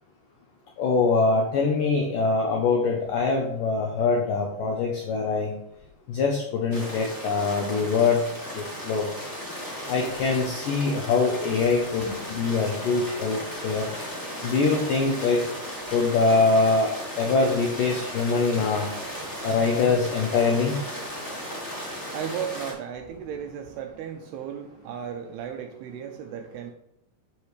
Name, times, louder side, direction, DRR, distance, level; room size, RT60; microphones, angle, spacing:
voice 1, 0.8-5.5 6.1-8.2 8.5-9.1 9.9-13.8 14.4-15.4 15.9-16.9 17.2-18.9 19.4-20.8, left 4 dB, 80° left, 1 dB, 1.9 m, -23 dB
sound 1, 6.7-22.7, equal, 10° left, 1.0 m, -36 dB
voice 2, 12.9-14.6 15.8-16.2 19.0-19.6 21.0-26.7, right 8 dB, 80° right, 5 dB, 2.4 m, -38 dB
11.5 x 5.0 x 3.2 m, 0.78 s
omnidirectional pair, 5.0 m